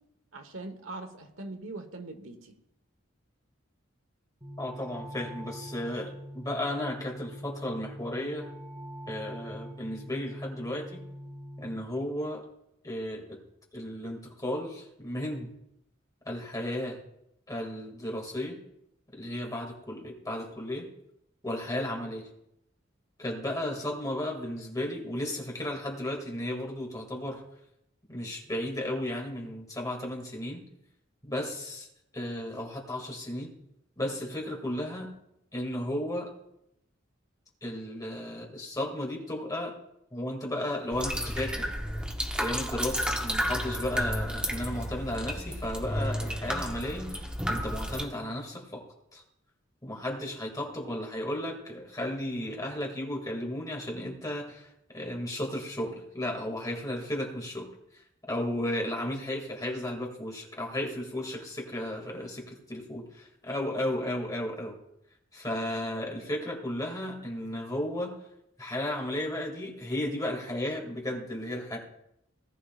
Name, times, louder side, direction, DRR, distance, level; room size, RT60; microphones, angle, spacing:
voice 1, 0.3-2.5, right 2 dB, 85° right, 6 dB, 1.3 m, -41 dB
sound 1, 4.4-11.8, equal, 20° right, 4.0 m, -43 dB
voice 2, 4.6-8.5 9.1-11.0 11.6-12.4 12.8-13.4 13.7-15.5 16.2-17.0 17.5-18.6 19.1-20.9 21.4-22.3 23.2-27.4 28.1-30.6 31.2-31.9 32.1-33.5 34.0-35.1 35.5-36.3 37.6-39.7 40.1-41.7 42.3-48.8 49.1-49.2 49.8-57.7 58.3-64.8 65.3-68.1 68.6-71.8, left 1 dB, 20° left, 0 dB, 2.3 m, -34 dB
sound 2, 40.9-48.0, equal, 5° right, 1.2 m, -32 dB
18.5 x 10.0 x 2.4 m, 0.80 s
head